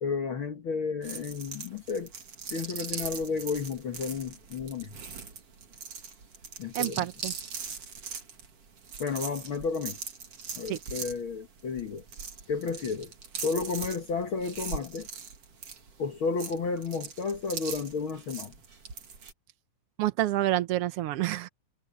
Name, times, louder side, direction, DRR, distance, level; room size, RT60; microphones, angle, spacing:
voice 1, 0.0-2.1 2.5-4.9 6.6-7.1 9.0-10.0 10.6-12.0 12.5-13.1 13.4-15.1 16.0-18.5, left 5 dB, 50° left, 1.9 m, -32 dB
sound 1, 1.0-19.3, right 6 dB, 50° right, 3.4 m, -41 dB
voice 2, 6.7-7.3 10.7-10.8 20.0-21.5, right 14 dB, 75° right, 1.4 m, -28 dB
omnidirectional pair, 3.5 m